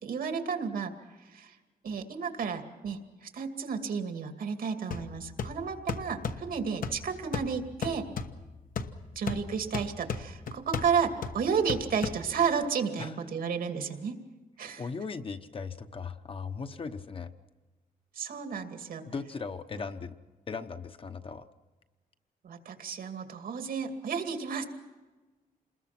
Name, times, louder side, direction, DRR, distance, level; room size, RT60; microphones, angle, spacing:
voice 1, 0.0-0.9 1.2-1.6 1.8-8.0 9.1-14.1 14.6-14.8 18.1-19.1 22.4-24.6, right 6 dB, 85° right, 6 dB, 2.5 m, -32 dB
sound 1, 4.9-12.6, left 5 dB, 70° left, 1.3 m, -37 dB
voice 2, 14.8-17.3 19.1-20.1 20.5-21.5, left 5 dB, 40° left, 8 dB, 1.0 m, -38 dB
28.0 x 21.0 x 6.0 m, 1.2 s
wide cardioid pair, 170°, 15 cm